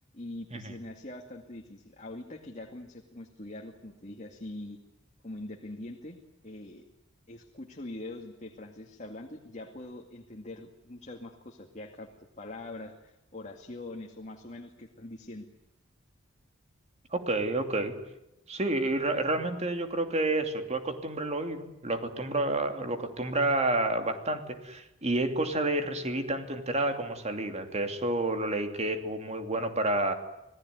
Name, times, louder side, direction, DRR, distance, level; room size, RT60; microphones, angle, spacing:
voice 1, 0.1-4.8 5.2-6.2 6.4-6.8 7.3-15.5, left 2 dB, 35° left, 2 dB, 2.3 m, -43 dB
voice 2, 17.1-17.9 18.5-30.1, right 2 dB, 35° right, 6 dB, 2.9 m, -29 dB
27.5 x 18.5 x 9.5 m, 0.89 s
head